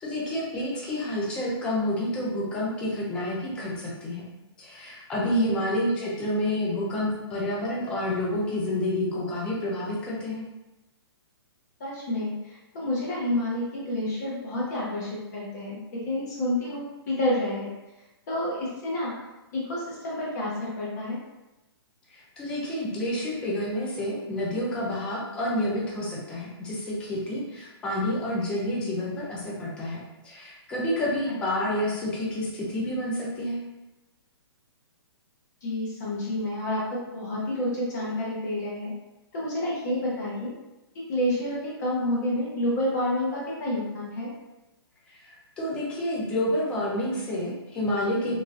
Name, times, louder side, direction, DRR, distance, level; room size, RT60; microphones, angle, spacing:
voice 1, 0.0-4.2 4.6-10.5 22.1-33.6 45.2-48.4, left 1 dB, 5° left, -5 dB, 0.4 m, -29 dB
voice 2, 11.8-15.8 16.0-17.7 18.3-19.1 19.5-21.2 31.3-31.4 35.6-38.9 39.3-40.5 41.1-44.3, left 1 dB, 40° left, -5 dB, 0.9 m, -29 dB
3.2 x 2.4 x 2.4 m, 1.0 s
hypercardioid pair, 165°, 14 cm